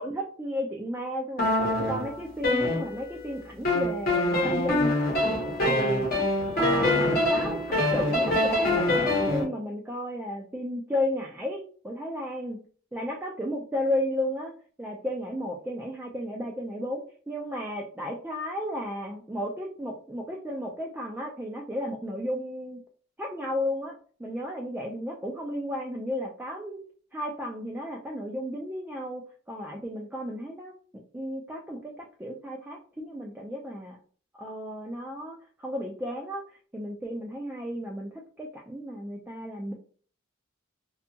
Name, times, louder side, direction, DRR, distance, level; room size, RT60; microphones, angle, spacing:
voice 1, 0.0-1.5 1.9-5.0 5.6-6.2 6.5-12.6 12.9-22.8 23.2-26.8 27.1-29.2 29.5-34.0 34.4-36.4 36.7-38.1 38.4-39.7, equal, 10° right, -1 dB, 0.3 m, -33 dB
sound 1, 1.4-3.2 3.7-9.4, left 1 dB, 50° left, 0.9 m, -25 dB
2.7 x 2.3 x 2.6 m, 0.43 s
head